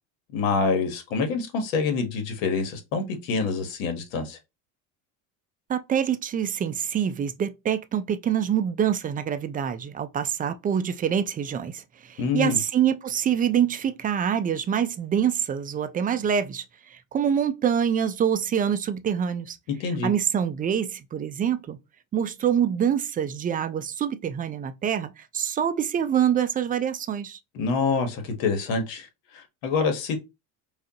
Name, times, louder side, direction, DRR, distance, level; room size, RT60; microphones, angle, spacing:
voice 1, 0.3-4.4 12.2-12.6 19.8-20.1 27.5-29.1 29.3-30.2, left 4 dB, 85° left, 1.3 m, -26 dB
voice 2, 5.7-19.6 20.0-21.8 22.1-27.4, right 8 dB, 20° right, 0.4 m, -25 dB
5.0 x 2.4 x 2.8 m
supercardioid pair, 110°, 40 cm